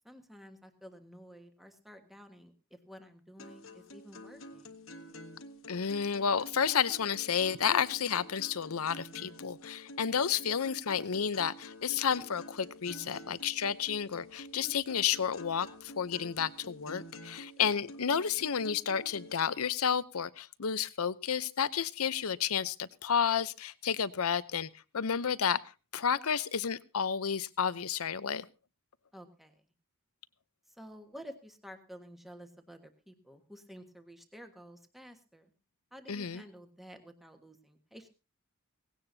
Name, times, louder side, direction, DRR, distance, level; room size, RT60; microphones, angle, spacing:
voice 1, 0.0-4.8 17.6-17.8 29.1-29.5 30.7-35.5 35.9-38.1, equal, ahead, 6 dB, 1.5 m, -51 dB
sound 1, 3.4-19.4, left 1 dB, 65° left, 1.4 m, -49 dB
voice 2, 5.7-25.6 25.9-28.5 36.1-36.4, left 7 dB, 85° left, 16 dB, 0.7 m, -31 dB
18.0 x 16.5 x 2.8 m, 0.30 s
head